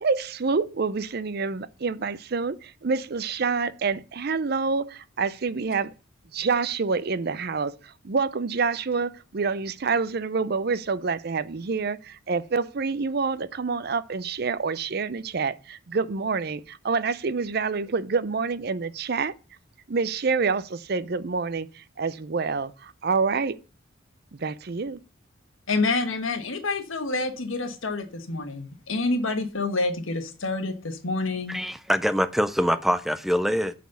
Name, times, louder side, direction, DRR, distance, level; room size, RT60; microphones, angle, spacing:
voice 1, 0.0-5.9 6.3-19.3 19.9-23.6 24.3-25.0, right 4 dB, 50° right, 0.5 m, -27 dB
voice 2, 25.7-31.6, left 3 dB, 90° left, 1.4 m, -28 dB
voice 3, 31.5-33.7, equal, ahead, 0.4 m, -24 dB
9.2 x 4.2 x 6.9 m
head